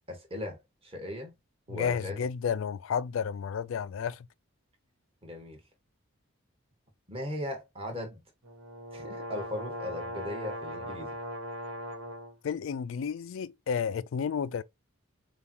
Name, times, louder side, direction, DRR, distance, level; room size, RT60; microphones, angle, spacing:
voice 1, 0.1-1.3 1.7-2.2 5.2-5.6 7.1-8.2 8.9-11.1, left 1 dB, 25° right, 1.5 m, -38 dB
voice 2, 1.7-4.3 12.4-14.6, left 7 dB, 65° left, 0.3 m, -31 dB
sound 1, 8.4-12.3, equal, 70° right, 1.5 m, -39 dB
6.9 x 2.4 x 2.9 m
head